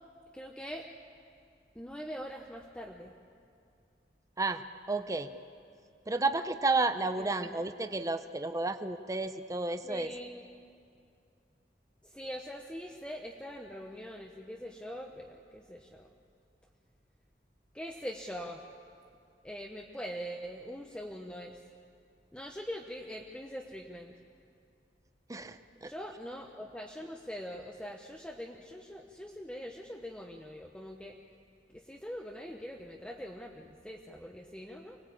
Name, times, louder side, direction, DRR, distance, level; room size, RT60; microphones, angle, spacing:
voice 1, 0.3-0.9 1.7-3.1 7.2-7.7 9.8-10.5 12.0-16.1 17.7-18.6 19.4-21.6 22.3-24.1 25.8-31.2 31.7-35.0, equal, 5° left, 1 dB, 1.0 m, -43 dB
voice 2, 4.4-5.3 6.1-10.2 25.3-25.9, right 3 dB, 20° right, 9 dB, 0.7 m, -32 dB
25.0 x 20.0 x 8.7 m, 2.4 s
head